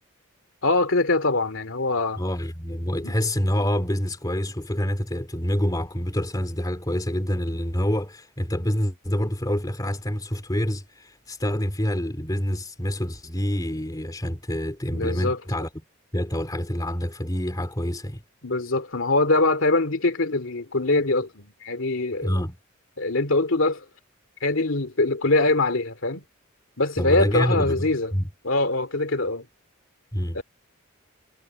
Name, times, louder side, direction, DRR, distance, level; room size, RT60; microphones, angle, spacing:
voice 1, 0.6-2.2 3.0-3.1 14.9-15.4 18.4-22.3 23.0-23.8 24.4-26.2 26.8-28.1 28.4-29.4 30.3-30.4, left 2 dB, 65° left, 2.6 m, -23 dB
voice 2, 2.2-15.7 16.1-18.2 22.2-22.5 27.0-28.3 30.1-30.4, equal, 20° left, 3.1 m, -27 dB
head